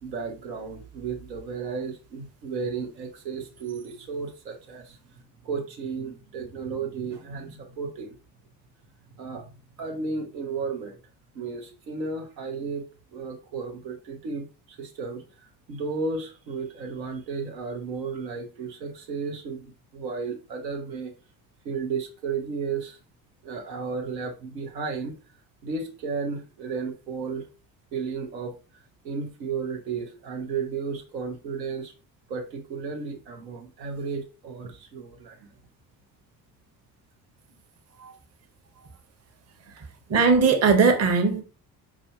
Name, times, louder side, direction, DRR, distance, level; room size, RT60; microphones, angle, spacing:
voice 1, 0.0-5.0 5.4-8.2 9.2-9.5 9.8-11.0 11.3-21.1 21.6-23.0 23.4-25.1 25.6-27.5 27.9-31.9 32.3-35.5, right 5 dB, 80° right, 0.8 m, -33 dB
voice 2, 40.1-41.4, right 4 dB, 30° right, 0.8 m, -19 dB
4.6 x 2.5 x 2.7 m
figure-of-eight pair, 45°, 50 cm